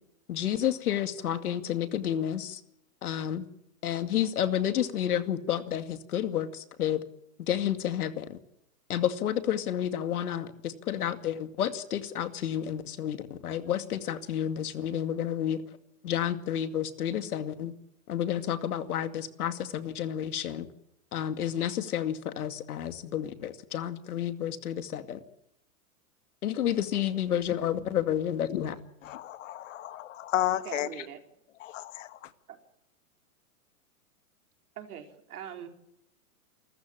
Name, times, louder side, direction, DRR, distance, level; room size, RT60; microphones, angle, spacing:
voice 1, 0.3-2.6 3.0-3.4 3.8-7.0 7.4-8.4 8.9-15.6 16.0-17.7 18.1-20.7 21.1-25.2 26.4-28.8, left 10 dB, 70° left, 2.4 m, -30 dB
voice 2, 29.0-31.1 31.6-32.3, left 13 dB, 55° left, 1.8 m, -33 dB
voice 3, 30.7-31.2 32.5-32.6 34.8-35.7, right 9 dB, 70° right, 4.4 m, -42 dB
28.5 x 14.5 x 8.8 m
hypercardioid pair, 155°, 45 cm